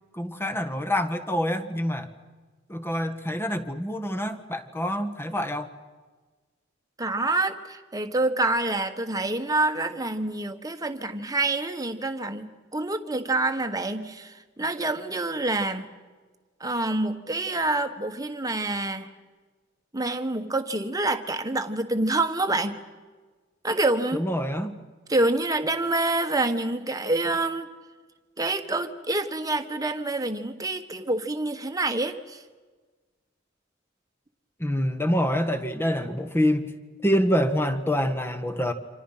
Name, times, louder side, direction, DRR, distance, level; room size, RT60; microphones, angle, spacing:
voice 1, 0.1-2.1 2.7-5.7 24.1-24.7 34.6-36.6 37.0-38.7, equal, 10° left, 9 dB, 1.7 m, -26 dB
voice 2, 7.0-15.9 16.6-19.1 19.9-22.8 23.6-24.3 25.1-27.7 28.4-32.4, right 2 dB, 20° right, 7 dB, 1.6 m, -27 dB
29.0 x 26.5 x 5.8 m, 1.4 s
head